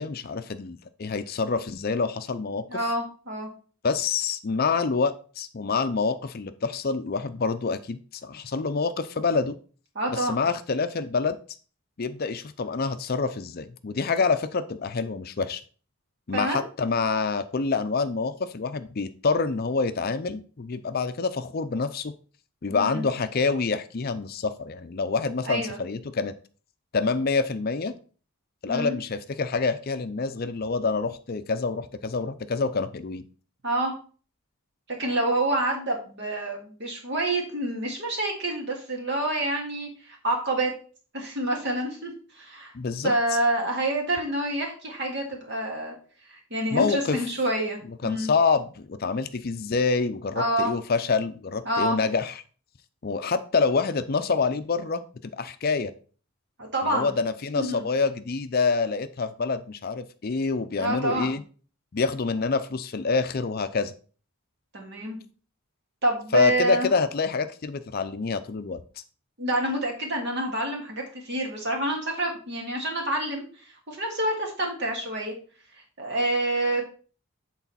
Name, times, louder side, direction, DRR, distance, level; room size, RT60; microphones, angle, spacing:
voice 1, 0.0-2.8 3.8-9.6 10.1-11.4 12.0-15.6 16.3-22.1 22.6-26.3 26.9-27.9 28.6-33.2 42.7-43.1 46.7-47.2 48.0-52.4 53.0-55.0 55.4-55.9 56.8-61.4 61.9-63.9 66.3-68.8, left 4 dB, 45° left, 11 dB, 0.5 m, -27 dB
voice 2, 2.7-3.5 10.0-10.4 16.3-16.6 22.7-23.1 25.5-25.8 28.7-28.9 33.6-33.9 34.9-40.7 41.1-42.7 43.0-45.9 46.3-48.3 50.4-50.7 51.7-52.0 56.6-57.2 57.6-57.8 60.8-61.4 64.7-65.2 66.0-66.9 69.4-75.3 76.0-76.8, right 1 dB, 55° right, 0 dB, 2.0 m, -27 dB
8.3 x 4.0 x 4.1 m, 0.40 s
head